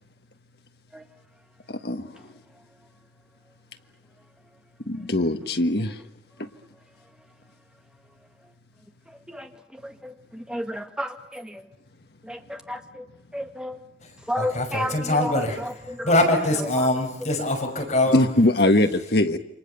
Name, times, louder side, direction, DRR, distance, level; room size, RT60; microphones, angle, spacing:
voice 1, 1.7-2.3 4.9-6.0 6.4-6.5 18.1-19.4, left 1 dB, 65° left, 7 dB, 1.7 m, -22 dB
voice 2, 9.8-11.6 12.3-13.1 13.3-13.8 14.3-15.3 15.9-16.1, equal, 5° right, 5 dB, 1.7 m, -32 dB
voice 3, 14.4-18.1, left 1 dB, 40° left, 2 dB, 6.1 m, -23 dB
28.5 x 25.5 x 7.0 m, 0.72 s
head